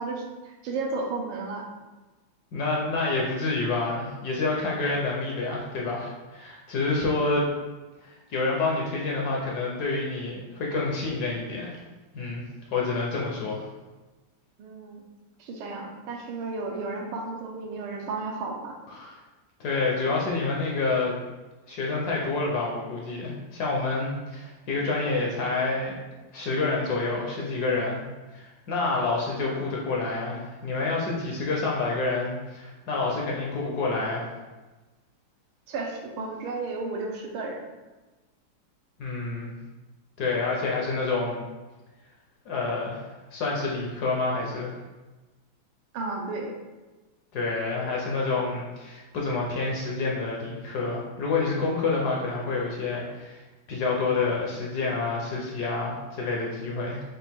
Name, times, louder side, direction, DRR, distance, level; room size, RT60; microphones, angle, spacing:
voice 1, 0.0-1.7 14.6-15.0 15.4-18.8 35.7-37.6 45.9-46.5, right 3 dB, 80° right, 1 dB, 1.5 m, -33 dB
voice 2, 2.5-7.5 8.0-11.7 12.1-12.4 12.7-13.6 18.9-19.1 19.6-21.2 21.7-26.0 26.3-28.0 28.3-34.3 39.0-39.5 40.2-41.5 42.5-43.0 43.3-44.7 47.3-53.4 53.7-57.0, left 3 dB, 65° left, -3 dB, 1.0 m, -28 dB
5.9 x 2.4 x 3.5 m, 1.2 s
omnidirectional pair, 2.3 m